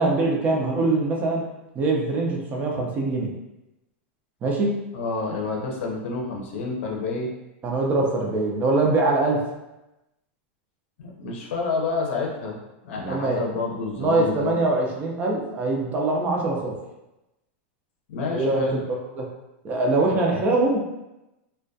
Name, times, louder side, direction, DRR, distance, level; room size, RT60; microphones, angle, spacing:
voice 1, 0.0-1.4 1.7-3.3 4.4-4.8 7.6-9.4 13.1-13.4 14.0-16.8 18.3-18.8 19.2-19.3 19.6-20.8, right 2 dB, 25° right, -1 dB, 0.4 m, -23 dB
voice 2, 4.9-7.3 11.0-12.6 12.8-14.6 18.1-18.8, left 3 dB, 75° left, -1 dB, 0.6 m, -29 dB
2.2 x 2.1 x 2.6 m, 0.96 s
supercardioid pair, 140°, 7 cm